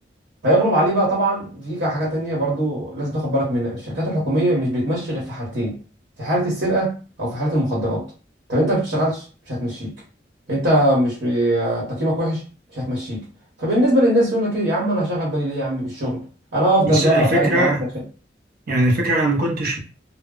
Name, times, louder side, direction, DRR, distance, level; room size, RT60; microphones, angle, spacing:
voice 1, 0.4-5.8 6.2-8.0 8.5-9.9 10.5-12.4 12.7-13.2 13.6-16.2 16.5-17.8, right 1 dB, 75° right, 1.1 m, -21 dB
voice 2, 16.8-17.8 18.7-19.8, right 1 dB, 55° right, 0.8 m, -20 dB
2.1 x 2.0 x 3.7 m
head